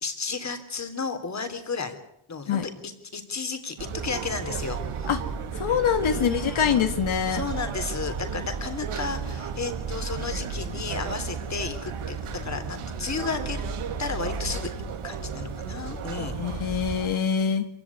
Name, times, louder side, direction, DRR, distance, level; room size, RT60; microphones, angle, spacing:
voice 1, 0.0-1.9 2.3-5.1 6.0-6.9 7.3-13.6 14.0-14.7 15.0-16.8, left 4 dB, 35° left, 8 dB, 3.5 m, -33 dB
sound 1, 3.8-17.1, right 5 dB, 90° right, 2.8 m, -33 dB
voice 2, 5.6-7.4 16.3-17.7, left 7 dB, 75° left, 7 dB, 2.0 m, -24 dB
27.0 x 16.0 x 9.8 m, 0.79 s
wide cardioid pair, 145°, 49 cm